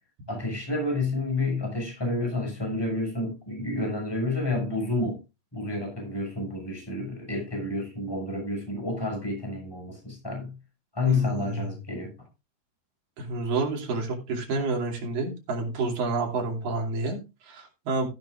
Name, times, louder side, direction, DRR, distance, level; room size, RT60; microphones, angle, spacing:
voice 1, 0.3-5.2 5.5-10.6 10.9-12.1, left 2 dB, 5° left, 6.2 m, -29 dB
voice 2, 11.1-11.7 13.2-18.1, right 3 dB, 60° right, 4.4 m, -29 dB
14.5 x 10.5 x 2.5 m
omnidirectional pair, 4.6 m